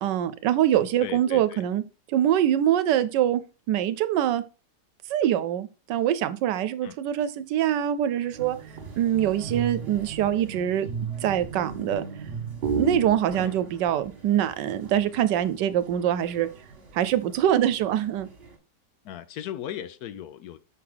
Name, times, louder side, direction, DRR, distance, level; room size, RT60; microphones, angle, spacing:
voice 1, 0.0-1.8 2.1-3.4 3.7-4.4 5.1-8.6 9.0-10.9 11.2-12.0 12.7-16.5 16.9-18.3, right 11 dB, 90° right, 1.3 m, -24 dB
voice 2, 1.0-1.6 6.8-7.0 13.4-13.5 19.0-20.6, left 10 dB, 70° left, 1.1 m, -37 dB
sound 1, 8.3-18.6, right 5 dB, 40° right, 1.6 m, -36 dB
6.0 x 4.7 x 3.8 m
omnidirectional pair, 1.8 m